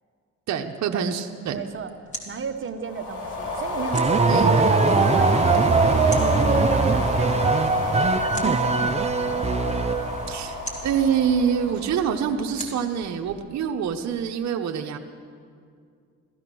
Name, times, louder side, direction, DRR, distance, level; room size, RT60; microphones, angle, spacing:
voice 1, 0.5-1.6 4.3-4.5 10.3-15.0, right 7 dB, 65° right, 3 dB, 0.9 m, -25 dB
sound 1, 1.5-14.2, equal, 25° left, 2.9 m, -44 dB
voice 2, 1.5-1.9 2.3-9.1, right 6 dB, 40° right, 7 dB, 1.0 m, -35 dB
sound 2, 2.8-12.3, left 2 dB, 75° left, 3.4 m, -28 dB
sound 3, 3.9-10.4, right 4 dB, 20° right, 0.5 m, -21 dB
16.0 x 13.5 x 6.2 m, 2.3 s
cardioid pair, 90°, 30 cm